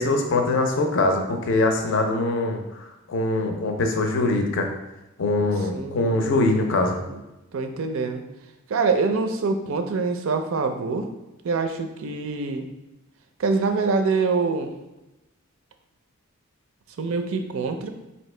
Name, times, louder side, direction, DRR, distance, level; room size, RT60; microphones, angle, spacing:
voice 1, 0.0-4.7 5.2-7.0, left 2 dB, 65° left, 4 dB, 0.5 m, -23 dB
voice 2, 5.7-7.2 7.5-8.2 8.7-11.1 11.4-12.7 13.4-14.7 17.0-17.9, right 4 dB, 70° right, 6 dB, 0.4 m, -25 dB
4.3 x 2.7 x 3.2 m, 0.99 s
head